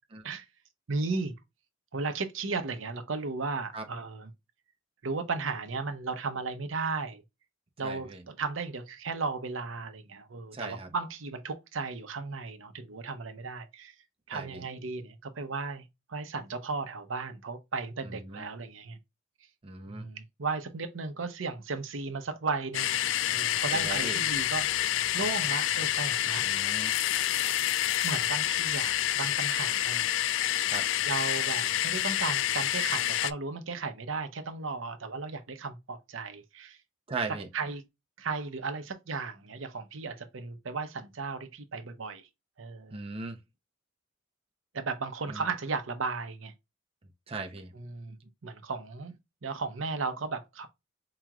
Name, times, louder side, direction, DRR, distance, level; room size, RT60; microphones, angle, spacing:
voice 1, 0.9-1.3 1.9-4.3 5.0-7.2 7.8-13.9 14.3-19.0 19.9-23.0 23.3-24.7 25.1-26.4 28.0-30.0 31.0-36.8 37.5-37.8 38.2-42.2 42.6-43.0 44.7-46.5 47.7-48.2 48.4-49.1 49.4-50.7, right 4 dB, 80° right, 0.7 m, -35 dB
voice 2, 7.8-8.2 10.5-10.9 14.3-14.6 18.0-18.4 19.6-20.1 23.7-24.2 26.4-26.9 30.7-30.9 37.1-37.5 42.9-43.4 45.3-45.4 47.3-47.7, right 3 dB, 30° right, 0.6 m, -38 dB
sound 1, 22.7-33.3, left 12 dB, 70° left, 0.3 m, -28 dB
4.8 x 3.0 x 2.3 m
head